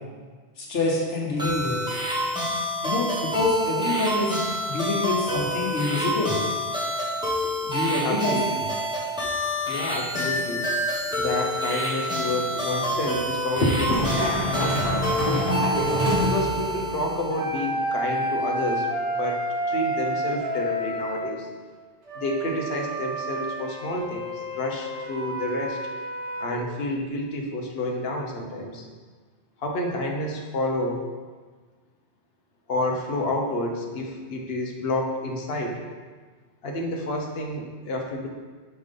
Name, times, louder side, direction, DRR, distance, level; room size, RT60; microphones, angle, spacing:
voice 1, 0.6-1.8 2.8-6.3 7.6-8.4, left 3 dB, 85° left, -3 dB, 1.4 m, -26 dB
sound 1, 1.4-17.6, equal, 5° right, 1.3 m, -28 dB
voice 2, 8.0-8.5 9.7-10.7 11.2-15.4 16.2-21.5 22.1-25.8 26.4-28.9 29.6-31.0 32.7-35.8 36.6-38.3, left 1 dB, 60° left, 1 dB, 1.1 m, -29 dB
sound 2, 13.9-17.2, equal, 30° right, 1.7 m, -26 dB
sound 3, 17.3-21.3 22.0-26.6, right 1 dB, 75° right, 1.6 m, -30 dB
5.3 x 4.6 x 5.2 m, 1.4 s
omnidirectional pair, 1.2 m